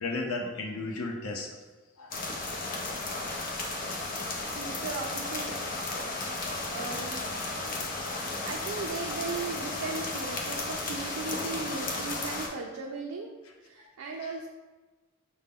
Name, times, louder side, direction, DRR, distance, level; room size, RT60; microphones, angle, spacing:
voice 1, 0.0-1.5 2.0-2.3 6.4-7.9 13.8-13.9 14.2-14.3, left 2 dB, 85° left, 1 dB, 0.6 m, -37 dB
sound 1, 2.1-12.5, left 2 dB, 40° left, 0.6 m, -34 dB
voice 2, 4.6-5.8 6.7-7.3 8.4-13.3 13.6-14.5, right 4 dB, 70° right, 0 dB, 0.4 m, -37 dB
5.3 x 2.1 x 3.5 m, 1.3 s
head